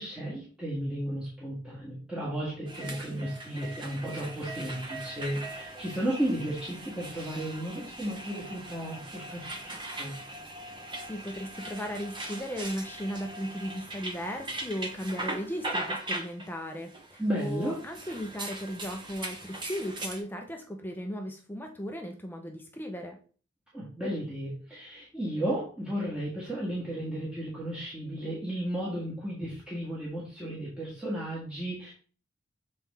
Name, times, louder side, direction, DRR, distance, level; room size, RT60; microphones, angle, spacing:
voice 1, 0.0-10.1 17.2-17.8 23.7-31.9, right 1 dB, 5° right, -7 dB, 1.6 m, -34 dB
sound 1, 2.7-20.2, right 1 dB, 25° right, 0.9 m, -40 dB
voice 2, 11.1-23.2, equal, 10° left, 3 dB, 0.6 m, -36 dB
7.4 x 4.2 x 3.6 m, 0.41 s
head